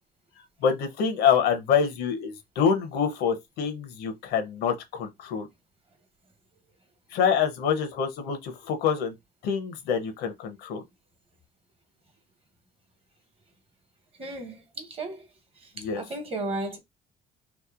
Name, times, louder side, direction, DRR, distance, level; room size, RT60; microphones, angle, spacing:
voice 1, 0.6-5.5 7.1-9.1 9.4-10.8 15.8-16.0, left 7 dB, 80° left, 0.7 m, -26 dB
voice 2, 14.2-15.3 15.6-16.8, right 2 dB, 35° right, 1.0 m, -35 dB
2.9 x 2.1 x 2.4 m
cardioid pair, 110°, 17 cm